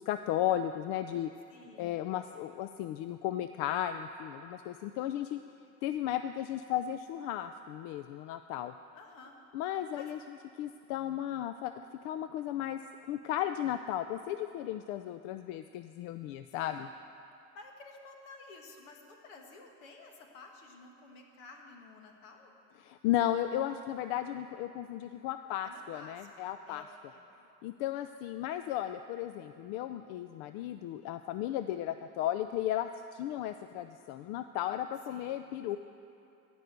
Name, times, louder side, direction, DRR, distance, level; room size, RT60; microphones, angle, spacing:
voice 1, 0.0-1.3 1.8-5.4 5.8-8.7 9.5-10.2 10.6-11.7 12.0-12.8 13.1-16.9 22.8-26.8 27.6-35.8, left 12 dB, 70° left, 10 dB, 0.5 m, -35 dB
voice 2, 1.5-2.0 8.9-9.4 10.0-10.1 16.5-16.9 17.5-22.5 25.6-27.3 35.1-35.4, left 3 dB, 90° left, 3 dB, 1.6 m, -52 dB
15.0 x 5.5 x 8.0 m, 2.7 s
supercardioid pair, 95°, 39 cm